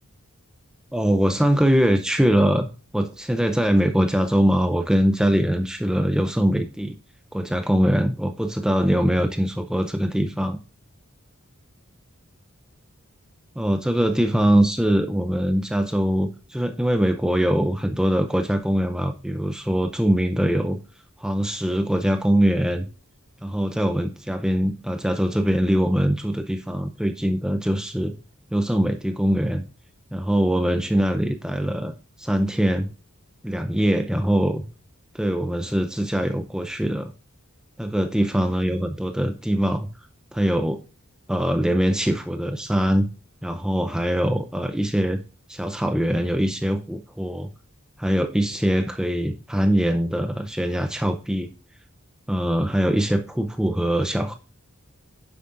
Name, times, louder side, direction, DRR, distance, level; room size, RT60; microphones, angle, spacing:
voice 1, 0.9-2.7 2.9-7.0 7.3-10.6 13.6-20.8 21.2-22.9 23.4-28.1 28.5-29.6 30.1-32.9 33.4-34.6 35.1-37.1 37.8-39.9 40.3-40.8 41.3-43.1 43.4-45.2 45.5-47.5 48.0-51.5 52.3-54.4, equal, 5° right, 6 dB, 0.5 m, -22 dB
9.4 x 7.5 x 2.5 m, 0.35 s
head